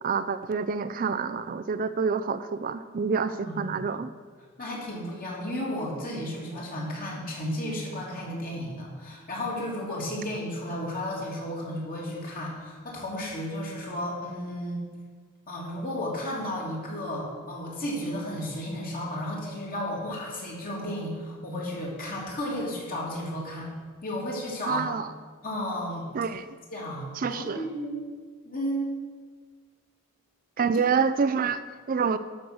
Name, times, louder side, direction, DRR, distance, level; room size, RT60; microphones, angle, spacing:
voice 1, 0.0-4.1 24.7-25.1 26.1-26.5 27.2-27.6 30.6-31.6 31.9-32.2, right 5 dB, 40° right, 12 dB, 0.4 m, -27 dB
voice 2, 3.3-3.8 4.6-14.8 15.5-23.7 24.0-24.8 25.4-26.1 26.7-27.9 28.4-28.9, left 1 dB, 45° left, -3 dB, 2.9 m, -33 dB
12.5 x 6.4 x 6.1 m, 1.5 s
head